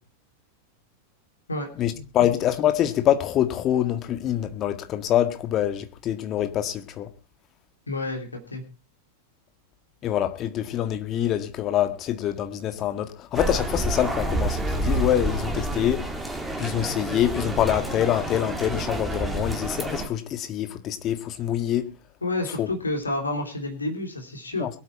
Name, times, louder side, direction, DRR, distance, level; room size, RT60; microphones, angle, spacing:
voice 1, 1.8-7.1 10.0-16.1 16.6-21.9 22.6-22.7 24.6-24.7, left 11 dB, 35° left, 1.8 m, -25 dB
voice 2, 7.9-8.6 22.2-24.7, left 2 dB, 80° left, 3.1 m, -29 dB
sound 1, 13.3-20.1, right 1 dB, 5° right, 2.6 m, -29 dB
22.5 x 8.5 x 4.4 m
figure-of-eight pair, 90°, 0 cm